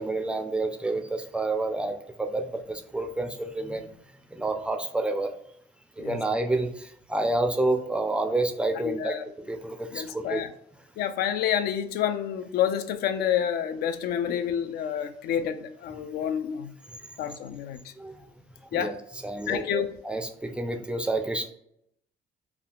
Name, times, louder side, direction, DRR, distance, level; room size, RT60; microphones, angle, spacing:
voice 1, 0.0-3.9 4.3-5.3 6.0-10.4 18.0-18.2 18.7-18.9 19.2-21.5, right 2 dB, 5° right, 0.4 m, -29 dB
voice 2, 8.7-9.2 9.9-10.5 11.0-16.7 17.2-17.9 18.7-18.9 19.5-19.9, left 9 dB, 70° left, 0.4 m, -28 dB
3.4 x 2.3 x 2.3 m
cardioid pair, 110°, 17 cm